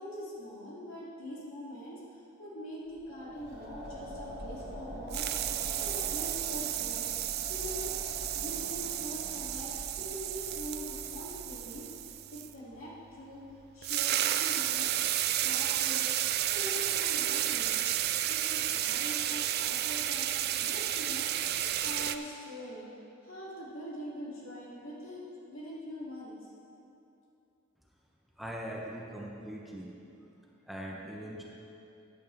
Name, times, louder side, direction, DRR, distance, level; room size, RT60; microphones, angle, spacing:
voice 1, 0.0-7.1 7.5-7.9 8.3-13.4 13.7-14.9 15.4-16.1 16.5-17.7 18.3-20.3 20.6-21.3 21.8-22.9 23.2-26.3, equal, 80° left, -7 dB, 2.8 m, -43 dB
sound 1, 2.9-12.2, equal, 30° right, 1.9 m, -44 dB
sound 2, 3.6-4.8 5.1-12.5 13.5-13.6 13.8-22.2, right 12 dB, 50° right, 0.3 m, -32 dB
voice 2, 28.4-29.9 30.7-31.4, equal, ahead, -3 dB, 0.9 m, -41 dB
14.5 x 9.0 x 3.4 m, 2.8 s
head